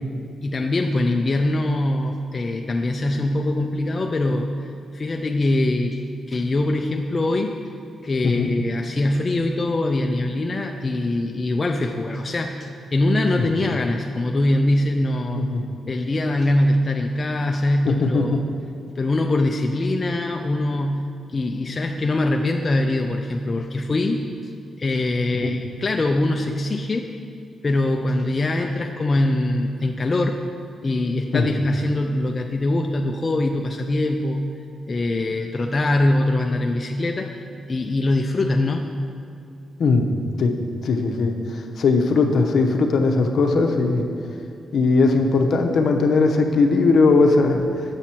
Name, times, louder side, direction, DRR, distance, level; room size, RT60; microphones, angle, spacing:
voice 1, 0.4-6.0 6.3-7.6 8.0-15.4 15.9-18.3 19.0-24.5 24.8-27.1 27.6-30.4 30.8-34.5 34.9-39.0, left 2 dB, 35° left, 3 dB, 0.4 m, -23 dB
voice 2, 17.8-18.4 25.4-25.5 31.3-31.5 39.8-40.1 40.4-40.5 40.8-44.0 44.7-47.7, left 3 dB, 65° left, 3 dB, 0.8 m, -19 dB
9.0 x 7.1 x 4.4 m, 2.5 s
cardioid pair, 90°, 0 cm